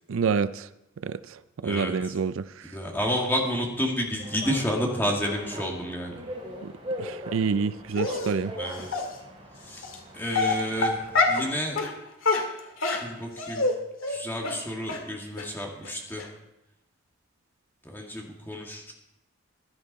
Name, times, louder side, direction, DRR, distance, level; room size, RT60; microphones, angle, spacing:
voice 1, 0.1-0.7 1.0-1.2 1.6-2.5 6.6-6.7 7.0-8.5, right 5 dB, 80° right, 15 dB, 0.4 m, -27 dB
voice 2, 1.6-2.1 2.6-6.1 8.6-8.9 9.7-9.8 10.1-11.0 11.3-11.8 13.0-13.7 14.1-16.3 17.8-18.9, equal, 10° left, -1 dB, 2.1 m, -30 dB
sound 1, 4.2-11.6, equal, 25° right, 3.8 m, -40 dB
Dog, 7.9-8.3 8.9-9.0 9.8-10.0 10.3-11.5 11.8-11.9 12.2-13.7 14.0-14.2 14.4-14.6 14.9-15.0 15.4-15.5 15.8-15.9 16.2-16.3, left 3 dB, 80° left, 2.1 m, -25 dB
15.5 x 11.5 x 4.2 m, 0.90 s
head